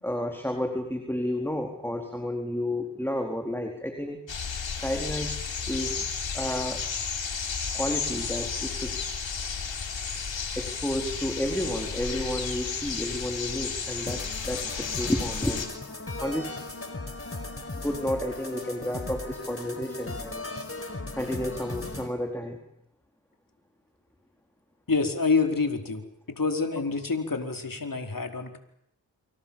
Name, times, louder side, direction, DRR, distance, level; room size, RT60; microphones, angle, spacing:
voice 1, 0.0-4.2 4.8-6.1 6.3-6.8 7.7-9.0 10.6-15.7 16.2-16.6 17.7-20.5 21.2-22.6, left 1 dB, 5° left, 3 dB, 4.3 m, -31 dB
sound 1, 4.3-15.7, left 5 dB, 90° left, 4.3 m, -33 dB
sound 2, 14.1-22.1, left 2 dB, 30° left, 5.1 m, -37 dB
voice 2, 24.9-26.0 26.3-28.6, left 4 dB, 50° left, 5 dB, 4.6 m, -27 dB
29.0 x 25.0 x 7.3 m, 0.75 s
cardioid pair, 50°, 44 cm